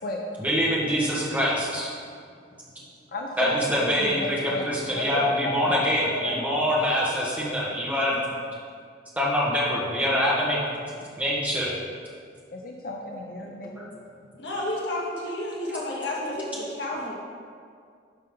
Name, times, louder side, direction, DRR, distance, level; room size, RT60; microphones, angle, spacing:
voice 1, 0.4-1.9 3.4-8.2 9.2-10.9 11.2-11.8 13.6-13.8 15.6-15.8, equal, 10° right, -6 dB, 1.5 m, -25 dB
voice 2, 2.3-6.4 12.5-13.9, left 2 dB, 50° left, 1 dB, 0.5 m, -34 dB
voice 3, 14.4-17.1, left 1 dB, 65° left, -4 dB, 1.7 m, -31 dB
10.5 x 5.5 x 3.8 m, 2.2 s
head